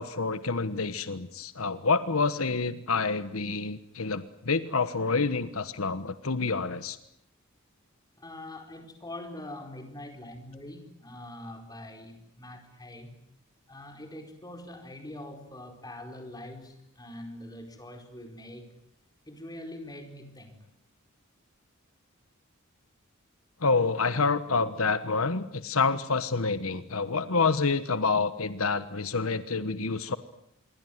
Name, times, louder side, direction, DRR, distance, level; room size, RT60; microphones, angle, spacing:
voice 1, 0.0-7.0 23.6-30.2, left 4 dB, 80° left, 13 dB, 1.3 m, -28 dB
voice 2, 8.2-13.2 13.7-18.7 19.3-20.6, left 1 dB, 20° left, 6 dB, 4.6 m, -43 dB
26.5 x 23.5 x 9.5 m, 0.75 s
head